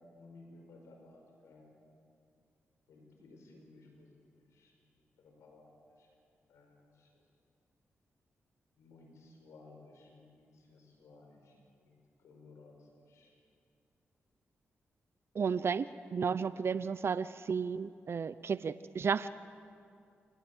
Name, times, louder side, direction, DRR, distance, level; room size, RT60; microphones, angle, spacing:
voice 1, 0.1-1.7 2.9-4.1 4.5-4.7 5.2-6.1 6.5-7.2 8.8-13.3, left 2 dB, 90° left, 2 dB, 5.3 m, -58 dB
voice 2, 15.3-15.9 16.1-19.3, right 6 dB, 60° right, 15 dB, 0.6 m, -33 dB
28.0 x 19.5 x 8.0 m, 2.4 s
cardioid pair, 55°, 5 cm